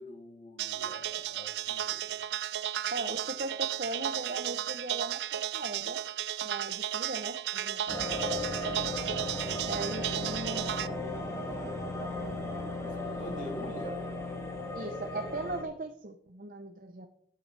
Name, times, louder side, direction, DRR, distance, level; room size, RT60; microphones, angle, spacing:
voice 1, 0.0-2.0 9.9-10.2 10.4-12.0 12.3-14.0, equal, 45° left, 0 dB, 3.3 m, -46 dB
sound 1, 0.6-10.9, right 11 dB, 75° right, 0.4 m, -34 dB
voice 2, 2.9-6.0 6.4-8.1 9.6-10.7 14.7-17.1, right 2 dB, 50° right, 7 dB, 0.8 m, -38 dB
sound 2, 7.9-15.6, left 2 dB, 20° left, 2.4 m, -36 dB
13.5 x 9.8 x 3.4 m, 0.71 s
head